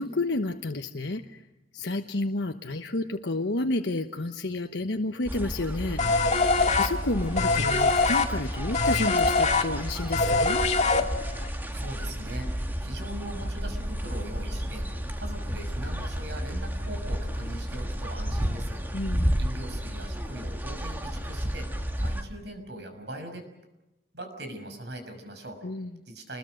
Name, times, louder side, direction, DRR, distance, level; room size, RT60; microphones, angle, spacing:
voice 1, 0.0-1.4 1.7-6.4 6.7-10.6 18.9-19.5 25.6-25.9, left 2 dB, 85° left, 5 dB, 1.2 m, -30 dB
sound 1, 5.3-22.2, equal, 10° right, 2.0 m, -32 dB
sound 2, 6.0-11.5, left 3 dB, 40° left, 2.2 m, -24 dB
voice 2, 11.7-18.8 19.4-23.5 24.1-25.7 26.1-26.4, right 1 dB, 70° right, 6 dB, 6.3 m, -41 dB
29.5 x 21.5 x 6.5 m, 0.96 s
head